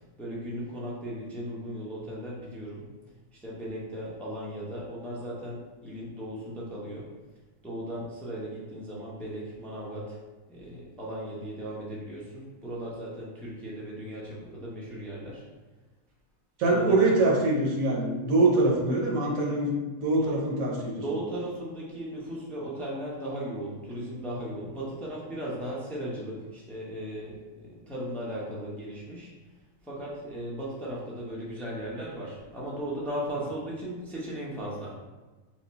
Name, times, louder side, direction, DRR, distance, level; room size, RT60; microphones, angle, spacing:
voice 1, 0.2-2.9 3.3-7.1 7.6-10.2 10.5-15.4 16.7-17.0 20.2-20.4 21.0-29.3 29.8-35.0, right 1 dB, ahead, -6 dB, 0.6 m, -37 dB
voice 2, 16.6-21.0, right 2 dB, 85° right, -1 dB, 1.3 m, -24 dB
4.6 x 2.4 x 4.1 m, 1.2 s
omnidirectional pair, 1.4 m